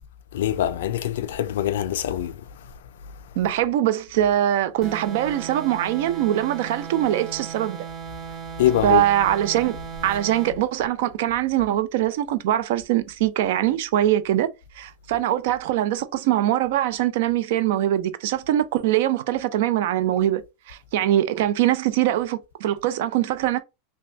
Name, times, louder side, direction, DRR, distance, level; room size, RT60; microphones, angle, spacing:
voice 1, 0.3-2.4 8.6-9.0, left 12 dB, 75° left, 0.3 m, -23 dB
voice 2, 3.4-7.8 8.8-9.8 10.0-20.4 20.7-23.6, right 12 dB, 70° right, 0.4 m, -22 dB
sound 1, 4.8-10.6, right 7 dB, 25° right, 1.9 m, -37 dB
3.0 x 2.2 x 2.6 m
hypercardioid pair, 105°, 0 cm